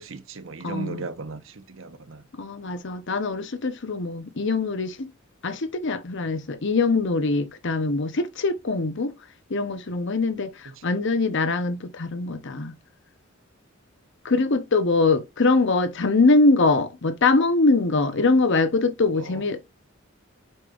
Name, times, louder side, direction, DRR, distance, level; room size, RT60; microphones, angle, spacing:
voice 1, 0.0-2.2 19.2-19.4, right 3 dB, 70° right, 0.9 m, -36 dB
voice 2, 0.6-1.0 2.4-5.1 5.4-9.1 9.5-12.7 14.2-19.8, left 3 dB, 65° left, 0.9 m, -23 dB
8.2 x 5.2 x 2.5 m
head